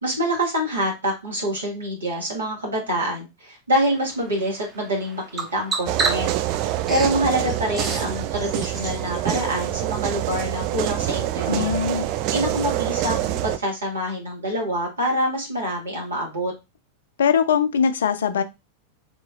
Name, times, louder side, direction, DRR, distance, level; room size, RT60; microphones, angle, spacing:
voice 1, 0.0-6.3 6.6-16.5, equal, 75° right, -1 dB, 1.5 m, -26 dB
Bird vocalization bird call bird song, 3.9-9.5, right 3 dB, 25° right, 1.0 m, -32 dB
sound 1, 5.9-13.6, right 13 dB, 40° right, 0.3 m, -26 dB
voice 2, 11.5-12.0 17.2-18.4, left 7 dB, 65° left, 11 dB, 0.4 m, -21 dB
3.7 x 2.9 x 2.4 m, 0.24 s
figure-of-eight pair, 90°, 0 cm